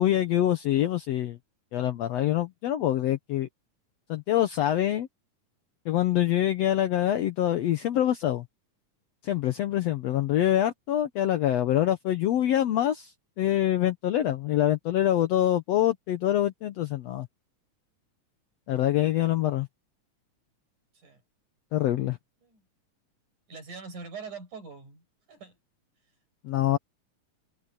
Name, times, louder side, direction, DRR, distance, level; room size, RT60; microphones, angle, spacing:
voice 1, 0.0-1.4 1.7-3.5 4.1-5.1 5.8-8.4 9.2-13.1 13.4-17.3 18.7-19.7 21.7-22.2 26.4-26.8, left 12 dB, 70° left, 1.8 m, -25 dB
voice 2, 23.5-25.6, right 5 dB, 75° right, 8.2 m, -43 dB
omnidirectional pair, 3.5 m